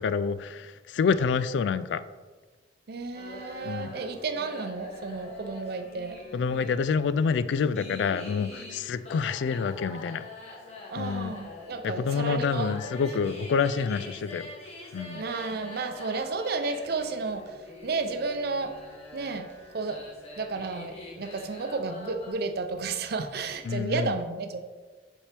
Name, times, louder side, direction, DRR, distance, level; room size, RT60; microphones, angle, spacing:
voice 1, 0.0-2.0 3.7-4.0 6.3-10.2 11.0-11.3 11.8-14.5 14.9-15.2 23.6-24.1, left 5 dB, 75° left, 14 dB, 0.3 m, -27 dB
voice 2, 2.9-6.2 10.9-12.8 15.1-18.8 19.1-20.0 20.4-24.6, right 4 dB, 60° right, 8 dB, 0.6 m, -32 dB
sound 1, 3.1-22.3, left 2 dB, 35° left, 1.3 m, -44 dB
7.2 x 4.4 x 3.4 m, 1.4 s
head